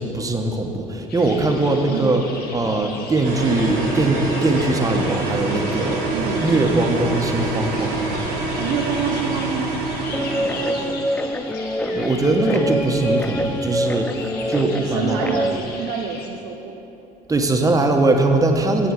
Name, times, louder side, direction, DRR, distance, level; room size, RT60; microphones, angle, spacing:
voice 1, 0.0-2.2 2.5-6.1 6.4-8.0 12.0-15.3 17.3-18.9, right 2 dB, 20° right, 3 dB, 1.1 m, -21 dB
sound 1, 1.1-16.3, left 3 dB, 60° left, 1.3 m, -38 dB
voice 2, 1.8-2.3 6.1-6.5 8.6-11.1 14.8-16.8, right 6 dB, 70° right, 4 dB, 0.7 m, -28 dB
sound 2, 3.2-10.9, right 2 dB, 85° right, 1.8 m, -25 dB
Guitar, 10.1-15.6, equal, 10° left, 0.5 m, -25 dB
7.7 x 7.2 x 7.1 m, 2.9 s
supercardioid pair, 80°, 18 cm